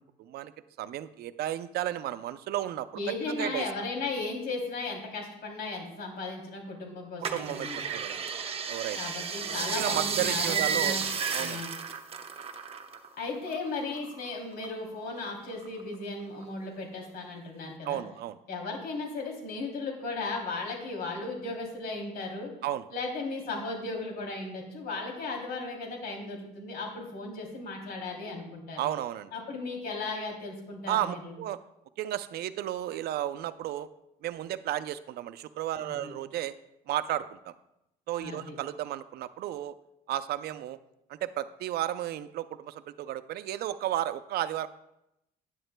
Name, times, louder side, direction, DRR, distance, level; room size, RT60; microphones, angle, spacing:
voice 1, 0.2-0.5 0.8-2.9 3.3-3.7 7.2-8.2 8.7-9.1 9.7-11.0 11.3-11.6 17.8-18.4 22.6-22.9 28.8-29.3 30.9-31.6 32.0-33.9 34.2-36.5 36.9-37.5 38.1-39.7 40.1-40.8 41.1-44.7, right 12 dB, 70° right, 13 dB, 0.5 m, -33 dB
voice 2, 2.9-7.8 8.9-11.0 11.4-11.7 13.2-18.0 18.5-22.5 22.9-28.9 29.3-31.3 35.8-36.1 38.2-38.5, left 3 dB, 70° left, 1 dB, 3.0 m, -36 dB
sound 1, 7.2-13.1 13.4-14.7 15.1-15.9 16.4-16.5, right 6 dB, 35° right, 0.9 m, -32 dB
11.0 x 9.9 x 2.2 m, 0.84 s
cardioid pair, 110°, 17 cm